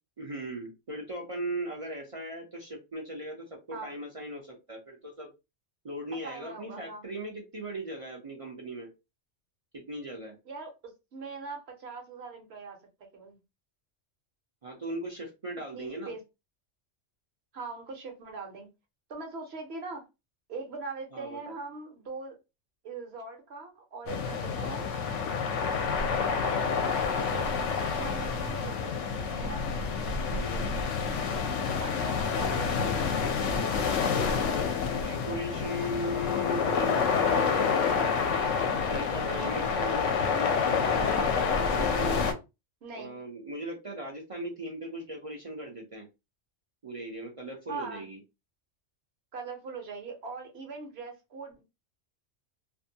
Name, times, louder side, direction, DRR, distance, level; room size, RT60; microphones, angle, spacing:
voice 1, 0.2-5.3 5.8-8.9 9.7-10.4 14.6-16.1 21.1-21.6 30.3-30.7 34.9-37.7 38.7-42.2 42.9-46.1 46.8-48.2, equal, 40° right, 0.5 m, -38 dB
voice 2, 6.2-7.1 10.5-10.7 11.1-12.8 13.1-13.4 15.7-16.2 17.5-18.7 19.1-20.0 20.5-22.4 22.8-24.9 26.2-27.5 27.9-29.7 31.8-33.9 39.2-39.6 42.8-43.1 47.7-48.1 49.3-51.6, right 4 dB, 60° right, 1.0 m, -41 dB
sound 1, 24.1-42.3, left 5 dB, 75° left, 0.9 m, -28 dB
2.5 x 2.1 x 2.7 m
omnidirectional pair, 1.3 m